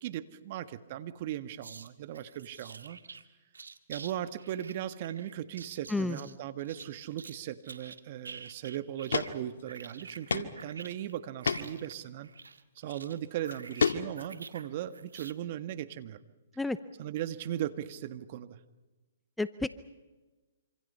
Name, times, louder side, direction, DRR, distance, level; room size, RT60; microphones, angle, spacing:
voice 1, 0.0-3.0 3.9-12.3 12.7-16.2 17.0-18.6, right 11 dB, 45° right, 11 dB, 1.6 m, -38 dB
sound 1, 1.6-3.2 3.5-4.1 4.4-7.4 7.6-9.4 9.7-14.7 14.9-15.3, right 5 dB, 90° right, 1.8 m, -48 dB
sound 2, 8.4-8.5 9.1-9.3 9.6-9.7 10.3-10.5 10.9-11.0 11.4-11.6 12.8-12.9 13.5-14.3, left 5 dB, 80° left, 1.9 m, -29 dB
voice 2, 19.4-19.7, left 2 dB, 5° left, 13 dB, 0.8 m, -30 dB
26.5 x 26.5 x 5.7 m, 1.2 s
hypercardioid pair, 135°, 0 cm